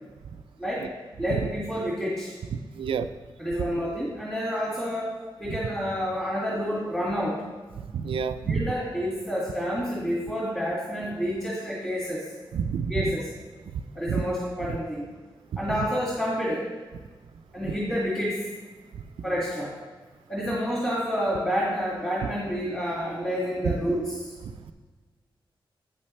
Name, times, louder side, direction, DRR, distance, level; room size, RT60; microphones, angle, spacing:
voice 1, 1.2-2.3 3.4-5.1 5.4-7.4 8.4-12.3 12.9-13.3 13.9-15.1 15.6-16.6 17.5-18.4 19.2-19.7 20.3-24.2, equal, 5° left, -6 dB, 2.2 m, -29 dB
voice 2, 2.8-3.1 7.9-8.6 12.5-12.9 13.7-13.8 14.1-14.2 17.6-17.7, right 6 dB, 90° right, 9 dB, 0.4 m, -28 dB
8.8 x 8.5 x 3.3 m, 1.3 s
wide cardioid pair, 100°, 9 cm